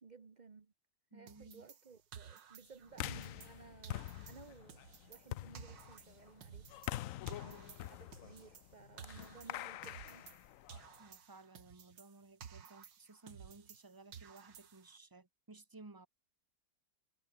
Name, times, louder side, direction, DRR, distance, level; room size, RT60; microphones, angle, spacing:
voice 1, 0.0-0.7 1.1-6.7 7.4-10.3, right 5 dB, 30° right, 1.0 m, -58 dB
voice 2, 1.1-1.7 7.4-7.8 11.0-16.1, right 3 dB, 10° right, 1.4 m, -58 dB
sound 1, 1.3-3.6 3.8-7.0 7.3-10.4 10.7-13.8 14.1-15.0, right 7 dB, 75° right, 2.3 m, -55 dB
sound 2, 2.9-11.0, left 14 dB, 75° left, 0.7 m, -46 dB
omnidirectional pair, 2.0 m